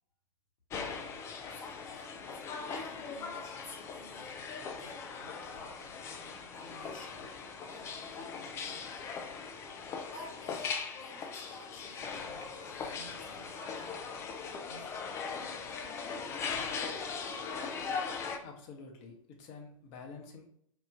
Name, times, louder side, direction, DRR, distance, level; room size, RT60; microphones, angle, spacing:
sound 1, 0.7-18.4, left 5 dB, 15° left, 0.3 m, -40 dB
voice 1, 1.5-2.4 2.7-6.2 6.5-7.3 7.7-8.8 10.1-13.9 14.4-15.0, left 2 dB, 65° left, -1 dB, 1.5 m, -52 dB
voice 2, 18.4-20.5, left 4 dB, 35° left, 2 dB, 0.8 m, -48 dB
4.8 x 2.4 x 2.4 m, 0.66 s
figure-of-eight pair, 105°, 18 cm